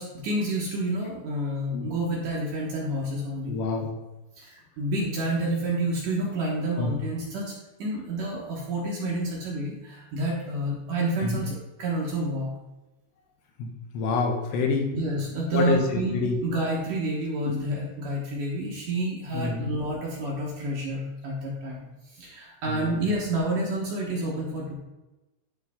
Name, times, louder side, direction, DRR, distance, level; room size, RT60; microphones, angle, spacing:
voice 1, 0.0-3.6 4.4-12.5 14.9-24.7, right 1 dB, 75° right, -4 dB, 1.9 m, -29 dB
voice 2, 3.5-3.9 6.8-6.9 11.2-11.4 13.6-13.7 13.9-14.9 15.5-16.4 17.4-17.5 19.3-19.7 22.7-23.0, left 4 dB, 75° left, 2 dB, 2.7 m, -27 dB
12.0 x 4.0 x 3.6 m, 1.0 s
omnidirectional pair, 5.6 m